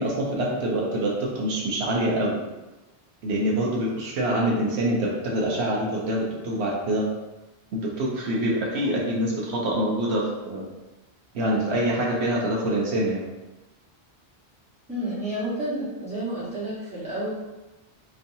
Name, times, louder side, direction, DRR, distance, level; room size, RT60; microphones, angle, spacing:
voice 1, 0.0-2.4 3.2-7.1 7.7-10.7 11.3-13.2, right 1 dB, 85° right, -3 dB, 1.0 m, -25 dB
voice 2, 14.9-17.3, right 1 dB, 5° right, -10 dB, 1.1 m, -30 dB
3.1 x 2.7 x 2.6 m, 1.1 s
omnidirectional pair, 1.1 m